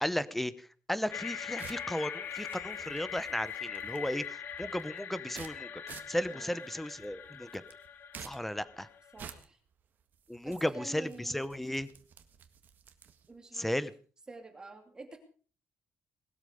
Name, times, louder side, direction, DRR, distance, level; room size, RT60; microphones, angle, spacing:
voice 1, 0.0-5.7 6.1-7.6 8.2-8.9 10.3-11.9 13.5-13.9, left 1 dB, 5° left, 16 dB, 0.8 m, -35 dB
sound 1, 1.1-9.3, left 8 dB, 50° left, 1.4 m, -42 dB
sound 2, 1.1-13.4, right 7 dB, 45° right, 1.7 m, -53 dB
voice 2, 9.1-9.6 10.4-11.4 13.3-13.7 14.3-15.2, right 3 dB, 15° right, 5 dB, 2.6 m, -48 dB
20.0 x 13.0 x 5.1 m, 0.42 s
cardioid pair, 170°, 4 cm